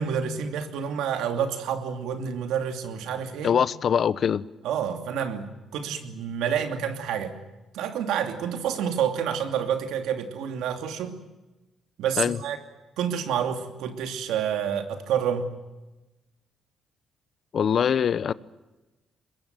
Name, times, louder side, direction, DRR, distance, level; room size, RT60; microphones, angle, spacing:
voice 1, 0.0-3.6 4.6-7.4 7.7-11.2 12.0-12.6 13.0-15.5, right 8 dB, 90° right, 7 dB, 2.7 m, -28 dB
voice 2, 3.4-4.4 12.2-12.4 17.5-18.3, left 8 dB, 55° left, 18 dB, 0.8 m, -23 dB
22.0 x 22.0 x 9.2 m, 1.1 s
cardioid pair, 90°, 0 cm